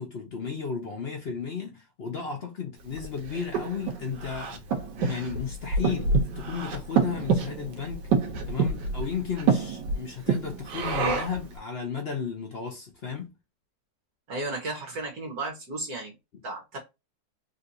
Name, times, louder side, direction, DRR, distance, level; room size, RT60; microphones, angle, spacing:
voice 1, 0.0-4.6 5.0-8.1 8.5-13.3, left 6 dB, 55° left, 0.7 m, -34 dB
Breathing, 3.0-11.5, right 4 dB, 80° right, 1.4 m, -27 dB
voice 2, 14.3-16.1 16.4-16.8, right 2 dB, 60° right, 1.5 m, -34 dB
3.8 x 2.5 x 2.6 m
omnidirectional pair, 1.9 m